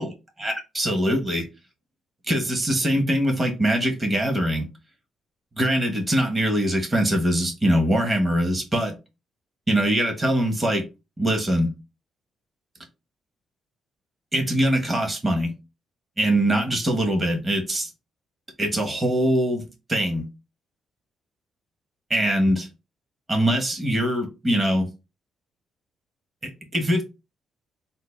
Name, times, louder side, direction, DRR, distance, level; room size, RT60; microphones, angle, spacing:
voice 1, 0.4-1.5 2.3-4.7 5.6-8.9 9.7-10.8 11.2-11.7 14.3-15.5 16.2-17.9 18.6-19.6 19.9-20.3 22.1-22.7 23.3-24.9 26.4-27.0, right 1 dB, 25° right, 1.3 m, -22 dB
3.9 x 2.2 x 3.5 m
cardioid pair, 90°, 0 cm